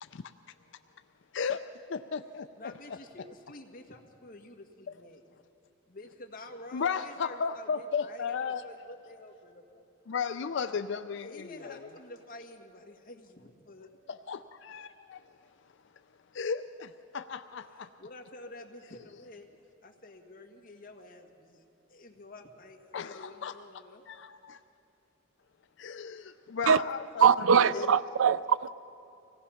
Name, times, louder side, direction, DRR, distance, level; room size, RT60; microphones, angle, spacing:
voice 1, 1.3-3.3 6.7-8.6 10.1-11.9 14.1-15.2 16.3-17.9 22.9-23.6 24.1-24.6 25.8-28.0, left 6 dB, 60° left, 0.4 m, -35 dB
voice 2, 2.6-5.2 5.9-9.8 11.1-13.9 18.0-19.5 19.8-21.6 21.9-24.0, left 2 dB, 45° left, 1.8 m, -49 dB
voice 3, 27.2-28.7, right 7 dB, 85° right, 0.5 m, -22 dB
25.0 x 18.0 x 5.8 m
head